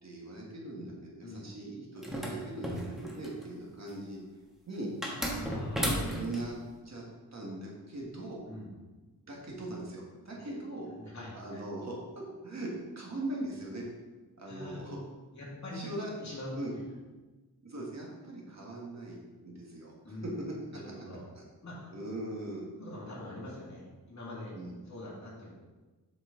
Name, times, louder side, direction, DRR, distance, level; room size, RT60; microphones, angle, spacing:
voice 1, 0.0-4.9 6.0-6.5 6.8-7.0 7.3-8.4 9.3-10.9 11.3-12.7 12.9-13.9 14.4-15.0 15.7-16.1 16.5-16.7 17.6-20.2 21.9-22.6 24.5-24.7, right 2 dB, 45° right, -3 dB, 1.7 m, -40 dB
sound 1, 2.0-3.4 5.0-6.4, equal, ahead, 1.2 m, -33 dB
voice 2, 5.1-5.9 8.5-8.7 11.0-11.3 14.5-14.8 15.3-15.9 16.2-16.8 20.0-20.3 20.7-21.3 21.6-21.9 22.8-24.6 24.9-25.5, left 1 dB, 45° left, -5 dB, 2.3 m, -43 dB
7.9 x 5.9 x 3.8 m, 1.2 s
wide cardioid pair, 165°, 38 cm